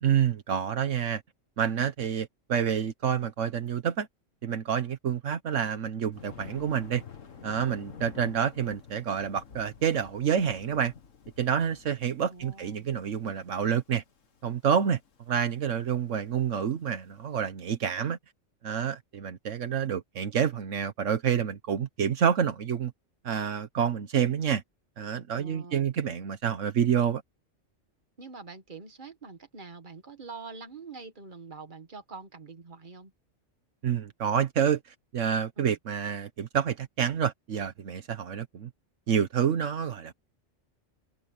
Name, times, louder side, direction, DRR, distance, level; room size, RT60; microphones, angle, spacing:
voice 1, 0.0-1.2 1.6-4.1 4.4-7.0 7.4-10.9 11.4-14.0 14.4-15.0 15.3-18.2 18.6-22.9 23.2-24.6 25.0-27.2 33.8-34.8 35.1-38.7 39.1-40.1, right 8 dB, 75° right, 1.3 m, -28 dB
Thunder, 6.1-17.2, left 6 dB, 80° left, 1.9 m, -50 dB
voice 2, 12.3-12.9 25.4-25.9 28.2-33.1 35.6-35.8, right 4 dB, 40° right, 1.9 m, -45 dB
omnidirectional pair, 1.3 m